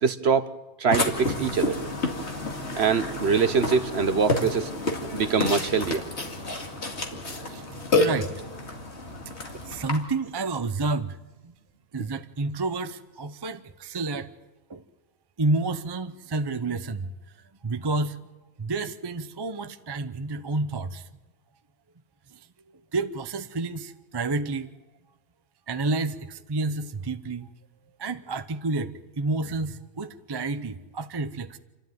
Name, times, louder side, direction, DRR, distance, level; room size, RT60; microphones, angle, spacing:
voice 1, 0.0-0.5 0.8-1.8 2.8-4.7 5.1-6.0 7.1-7.2, right 5 dB, 55° right, 1.0 m, -23 dB
Burping eructation, 0.9-10.0, left 2 dB, 50° left, 2.5 m, -29 dB
voice 2, 7.9-8.5 9.4-11.2 11.4-11.5 11.9-14.3 14.7-14.8 15.4-17.1 17.6-18.2 18.6-21.0 22.3-22.4 22.9-24.7 25.7-27.5 28.0-31.6, right 3 dB, 25° right, 0.6 m, -30 dB
28.5 x 12.5 x 9.3 m
omnidirectional pair, 1.5 m